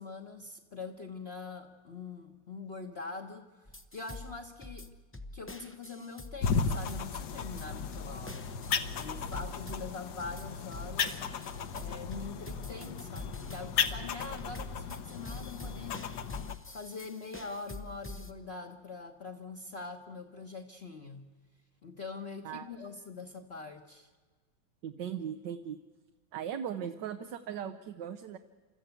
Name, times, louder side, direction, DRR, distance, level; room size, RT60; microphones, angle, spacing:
voice 1, 0.0-4.9 5.3-8.5 9.0-11.2 11.7-16.1 16.7-21.3 21.8-24.1, left 4 dB, 40° left, 1 dB, 1.2 m, -43 dB
sound 1, 3.7-18.3, left 2 dB, 20° left, 0.3 m, -46 dB
sound 2, 6.4-16.6, left 6 dB, 65° left, 1.5 m, -35 dB
voice 2, 24.8-25.8 26.3-28.4, right 8 dB, 70° right, 8 dB, 1.5 m, -38 dB
29.0 x 14.0 x 8.2 m, 1.5 s
omnidirectional pair, 2.0 m